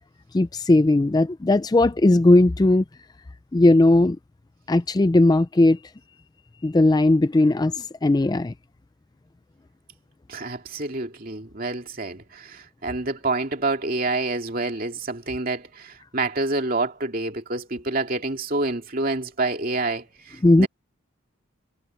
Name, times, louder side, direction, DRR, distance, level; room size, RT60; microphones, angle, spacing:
voice 1, 0.3-2.8 3.5-4.2 4.7-5.8 6.6-8.5 20.4-20.7, left 2 dB, 20° left, 0.3 m, -17 dB
voice 2, 10.3-20.0 20.6-20.7, right 2 dB, 40° right, 2.6 m, -27 dB
head